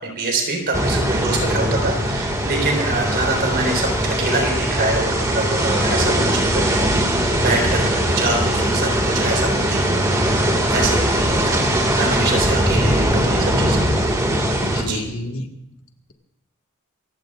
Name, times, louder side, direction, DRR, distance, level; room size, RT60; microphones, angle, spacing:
voice 1, 0.0-6.9 7.3-10.4 10.7-11.6 11.9-13.8 14.8-15.0, right 2 dB, 50° right, 1 dB, 4.3 m, -25 dB
sound 1, 0.7-14.8, right 1 dB, 15° right, 2.1 m, -20 dB
voice 2, 14.6-15.5, left 1 dB, 70° left, 3 dB, 1.8 m, -31 dB
27.5 x 16.0 x 2.5 m, 0.82 s
head